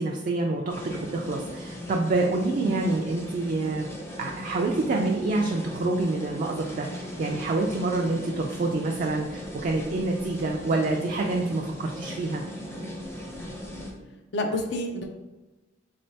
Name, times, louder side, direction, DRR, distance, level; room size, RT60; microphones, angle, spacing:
voice 1, 0.0-3.9 4.2-12.4, right 2 dB, 45° right, 0 dB, 0.3 m, -27 dB
sound 1, 0.7-13.9, equal, 15° left, 0.5 m, -38 dB
voice 2, 2.6-3.0 14.3-15.2, left 1 dB, 65° left, 4 dB, 0.5 m, -30 dB
3.7 x 3.2 x 2.7 m, 1.1 s
head